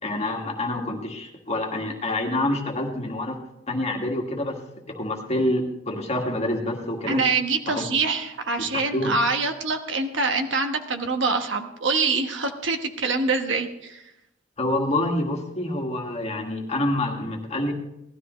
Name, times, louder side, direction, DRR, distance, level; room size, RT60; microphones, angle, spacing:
voice 1, 0.0-3.4 3.7-4.6 4.9-7.2 7.7-7.8 8.6-8.7 8.9-9.2 14.6-17.7, left 1 dB, 30° left, 0 dB, 1.9 m, -27 dB
voice 2, 7.1-14.0, right 3 dB, 65° right, 5 dB, 1.3 m, -25 dB
18.0 x 13.0 x 3.2 m, 0.84 s
head